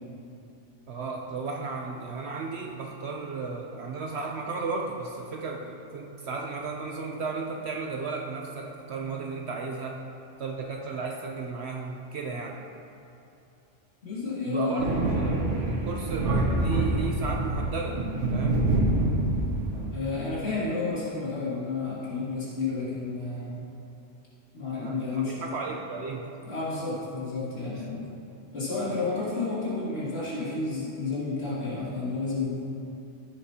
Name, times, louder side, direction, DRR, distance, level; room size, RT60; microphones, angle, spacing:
voice 1, 0.9-10.0 10.4-12.6 14.4-18.0 18.3-18.6 24.8-26.3 27.8-27.9, right 4 dB, 65° right, 0 dB, 0.9 m, -34 dB
voice 2, 14.0-14.9 19.9-23.6 24.5-25.7 26.4-28.1 28.5-32.6, left 3 dB, 60° left, -9 dB, 2.7 m, -31 dB
Thunder, 14.8-19.9, right 2 dB, 85° right, 1.5 m, -26 dB
14.5 x 8.2 x 2.8 m, 2.7 s
omnidirectional pair, 1.2 m